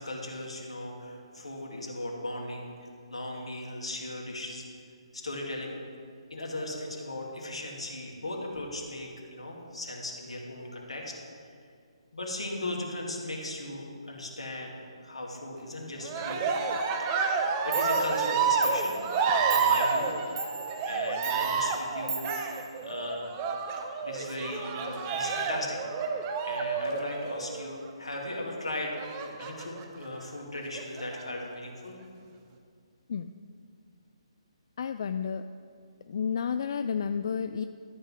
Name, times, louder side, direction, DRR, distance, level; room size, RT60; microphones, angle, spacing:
voice 1, 0.0-4.6 5.1-5.8 6.3-11.1 12.1-16.5 17.0-17.1 17.6-19.0 19.5-20.5 20.8-22.6 22.8-23.3 23.7-25.8 26.4-29.0 29.4-32.0, left 1 dB, 80° left, -1 dB, 2.3 m, -37 dB
Cheering, 16.0-27.7 29.0-29.8 30.6-31.2, right 5 dB, 25° right, 0.8 m, -29 dB
Clock, 17.4-17.5 17.7-23.4, right 4 dB, 70° right, 2.0 m, -39 dB
voice 2, 34.8-35.4 36.1-37.6, left 7 dB, 50° left, 9 dB, 0.3 m, -31 dB
12.5 x 5.4 x 6.3 m, 2.2 s
figure-of-eight pair, 140°, 3 cm